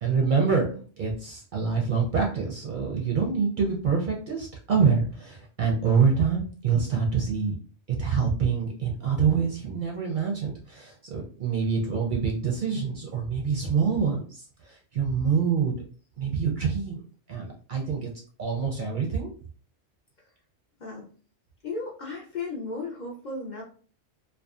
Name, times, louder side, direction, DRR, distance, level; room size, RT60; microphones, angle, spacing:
voice 1, 0.0-7.6 7.9-15.8 16.2-17.0 17.3-18.1 18.4-19.3, right 5 dB, 55° right, -1 dB, 0.6 m, -26 dB
voice 2, 21.6-23.6, left 3 dB, 50° left, -2 dB, 0.6 m, -35 dB
2.6 x 2.2 x 2.3 m, 0.42 s
omnidirectional pair, 1.2 m